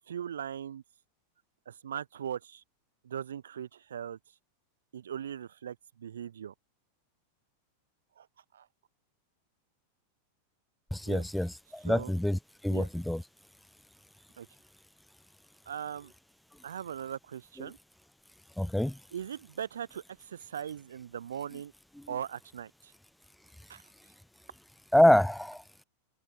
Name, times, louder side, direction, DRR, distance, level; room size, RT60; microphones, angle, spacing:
voice 1, 0.1-0.8 1.7-2.6 3.0-4.2 4.9-6.5 8.2-8.3 8.5-8.7 11.0-11.2 11.9-12.1 12.7-12.9 14.4-14.5 15.7-16.1 16.6-17.8 19.1-21.7 22.1-22.9 23.7-23.8, right 9 dB, 75° right, 0.5 m, -39 dB
voice 2, 10.9-13.2 18.6-19.0 24.9-25.6, left 1 dB, ahead, 0.7 m, -26 dB
open air
figure-of-eight pair, 90°, 0 cm